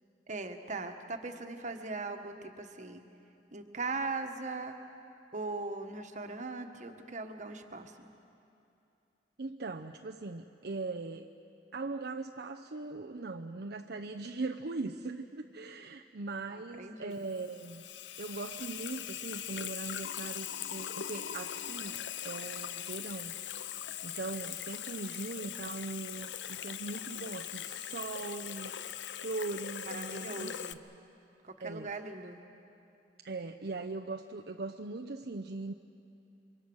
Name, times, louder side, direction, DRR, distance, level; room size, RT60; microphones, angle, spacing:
voice 1, 0.3-3.0 3.5-4.8 5.3-8.1 16.5-17.3 29.8-30.8 31.4-32.4, right 3 dB, 45° right, 6 dB, 1.5 m, -40 dB
voice 2, 9.4-11.3 11.7-17.9 18.2-23.3 23.6-28.7 29.1-30.5 31.6-31.9 33.2-35.7, right 3 dB, 65° right, 3 dB, 0.7 m, -40 dB
Water tap faucet / Sink (filling or washing), 17.1-30.7, left 10 dB, 85° left, 0.7 m, -41 dB
28.5 x 24.5 x 6.3 m, 2.7 s
head